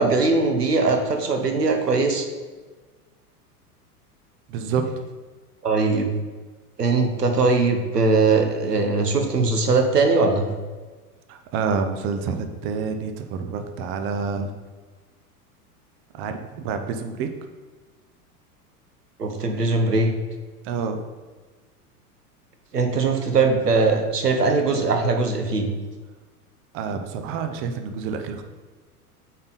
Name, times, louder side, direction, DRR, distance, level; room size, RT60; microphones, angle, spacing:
voice 1, 0.0-2.3 5.6-6.1 6.8-10.5 19.2-20.1 22.7-25.7, right 3 dB, 80° right, 5 dB, 1.1 m, -20 dB
voice 2, 4.5-4.9 11.3-14.5 16.1-17.3 20.6-21.0 26.7-28.4, right 5 dB, 30° right, 7 dB, 0.6 m, -28 dB
8.6 x 4.2 x 4.0 m, 1.3 s
figure-of-eight pair, 85°, 47 cm